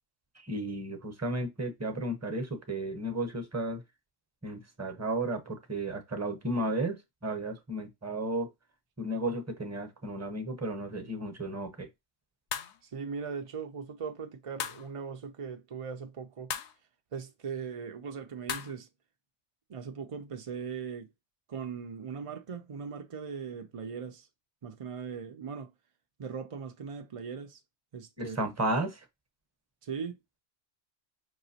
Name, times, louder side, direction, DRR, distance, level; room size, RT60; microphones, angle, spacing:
voice 1, 0.4-3.8 4.4-8.5 9.0-11.9 28.2-29.0, right 1 dB, 15° right, 0.7 m, -33 dB
sound 1, 12.5-12.8 14.6-14.9 16.5-16.7 18.5-18.7, left 9 dB, 70° left, 0.8 m, -36 dB
voice 2, 12.8-16.6 17.1-18.9 19.7-21.1 21.5-24.3 24.6-25.7 26.2-27.6 27.9-28.4 29.8-30.2, right 6 dB, 60° right, 0.3 m, -39 dB
5.4 x 2.9 x 2.8 m
omnidirectional pair, 1.3 m